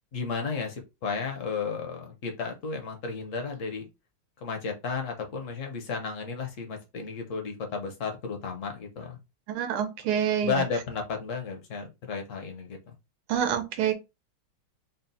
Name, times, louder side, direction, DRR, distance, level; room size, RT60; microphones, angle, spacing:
voice 1, 0.1-3.9 4.4-9.2 10.4-12.9, left 5 dB, 55° left, 0.9 m, -33 dB
voice 2, 9.5-10.6 13.3-13.9, right 9 dB, 85° right, 1.6 m, -27 dB
4.2 x 2.1 x 4.0 m
omnidirectional pair, 2.3 m